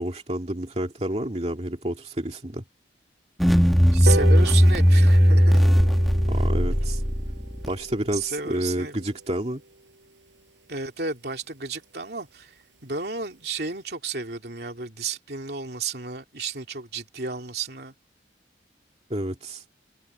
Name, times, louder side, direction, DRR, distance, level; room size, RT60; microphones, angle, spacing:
voice 1, 0.0-2.6 6.3-7.0 7.7-9.6 19.1-19.6, right 1 dB, 35° right, 2.3 m, -29 dB
sound 1, 3.4-7.7, equal, ahead, 1.1 m, -18 dB
voice 2, 3.8-5.6 8.1-8.9 10.7-12.5 12.8-17.9, right 4 dB, 60° right, 3.1 m, -32 dB
sound 2, 4.1-10.8 11.2-11.3 11.6-11.8 12.0-12.1 12.4-12.5 12.8-13.1 13.5-13.6, right 2 dB, 90° right, 6.3 m, -36 dB
head